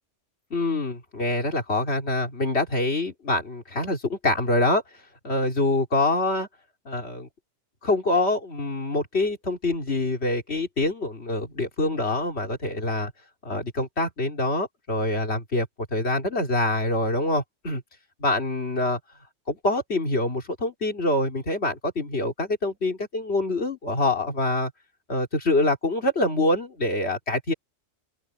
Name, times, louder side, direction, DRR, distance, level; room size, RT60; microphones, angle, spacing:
voice 1, 0.5-4.8 5.2-6.5 6.9-7.3 7.8-13.1 13.4-17.8 18.2-19.0 19.5-24.7 25.1-27.5, left 2 dB, 65° left, 3.4 m, -25 dB
open air
omnidirectional pair, 1.2 m